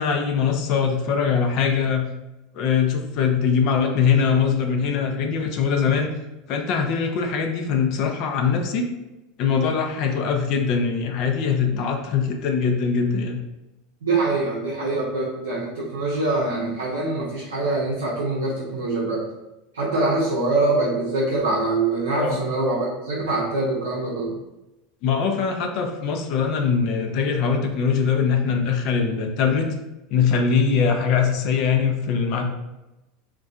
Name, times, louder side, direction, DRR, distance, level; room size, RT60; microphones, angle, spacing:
voice 1, 0.0-2.0 2.5-6.1 6.5-8.9 9.4-13.4 22.2-22.4 25.0-29.7 30.1-32.5, left 6 dB, 55° left, 4 dB, 0.4 m, -22 dB
voice 2, 14.0-19.2 19.7-24.4, right 2 dB, 85° right, -5 dB, 0.6 m, -24 dB
2.6 x 2.2 x 2.3 m, 0.97 s
hypercardioid pair, 85°, 0 cm